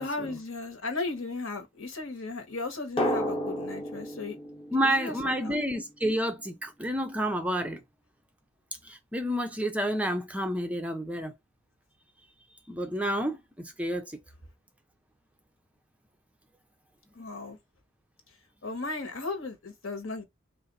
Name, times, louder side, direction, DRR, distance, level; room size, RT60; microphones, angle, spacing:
voice 1, 0.0-4.4 4.8-5.1 5.4-5.7 17.1-17.6 18.6-20.2, left 3 dB, 70° left, 1.3 m, -36 dB
Drum, 3.0-5.7, equal, 25° left, 0.9 m, -32 dB
voice 2, 4.7-7.8 8.8-11.3 12.7-14.2, equal, 5° right, 0.4 m, -29 dB
3.8 x 2.5 x 3.9 m
head